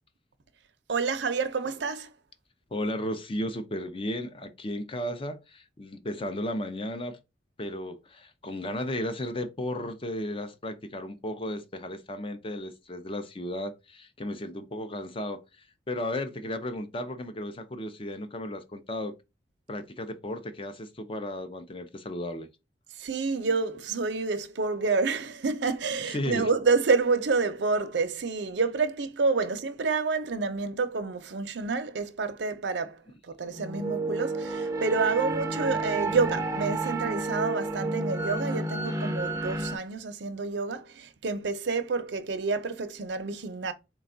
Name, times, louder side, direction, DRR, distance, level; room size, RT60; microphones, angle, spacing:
voice 1, 0.9-2.1 23.0-43.7, right 4 dB, 75° right, 0.6 m, -28 dB
voice 2, 2.7-7.2 7.6-15.4 15.9-19.1 19.7-22.5 26.1-26.5, left 1 dB, 30° left, 0.6 m, -34 dB
sound 1, 33.5-39.8, right 2 dB, 20° right, 0.5 m, -31 dB
4.2 x 2.3 x 3.8 m
head